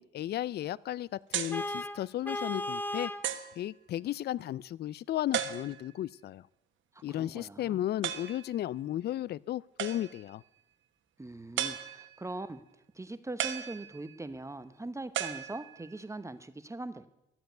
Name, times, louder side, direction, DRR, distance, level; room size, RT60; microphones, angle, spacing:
voice 1, 0.0-3.1 3.6-6.4 7.0-10.4, left 12 dB, 55° left, 23 dB, 0.4 m, -34 dB
sound 1, 1.3-1.7 2.4-2.5 3.2-3.6 5.3-6.0 8.0-8.4 9.8-10.3 11.6-12.3 13.4-14.3 15.1-16.0, right 10 dB, 75° right, 1.2 m, -35 dB
Vehicle horn car horn honking, 1.5-3.3, left 1 dB, 10° left, 0.7 m, -35 dB
voice 2, 6.9-7.8 11.2-12.6 12.9-17.1, right 2 dB, 15° right, 12 dB, 0.9 m, -41 dB
12.5 x 7.8 x 9.2 m, 0.85 s
cardioid pair, 90°, 20 cm